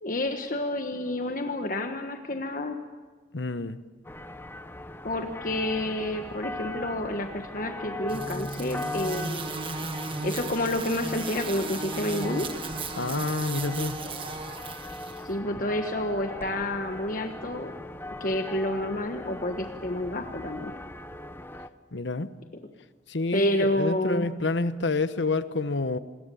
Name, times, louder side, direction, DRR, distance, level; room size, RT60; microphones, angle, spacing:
voice 1, 0.0-2.8 5.0-9.5 10.2-12.5 15.2-17.7 18.2-20.7 23.3-24.3, left 1 dB, 50° left, 5 dB, 1.4 m, -29 dB
voice 2, 3.3-3.8 12.9-14.0 21.9-22.3 23.1-26.0, left 3 dB, 85° left, 13 dB, 1.1 m, -28 dB
sound 1, 4.0-21.7, left 2 dB, 10° left, 0.8 m, -40 dB
sound 2, 8.1-15.2, right 3 dB, 30° right, 1.5 m, -35 dB
27.5 x 21.5 x 7.0 m, 1.4 s
head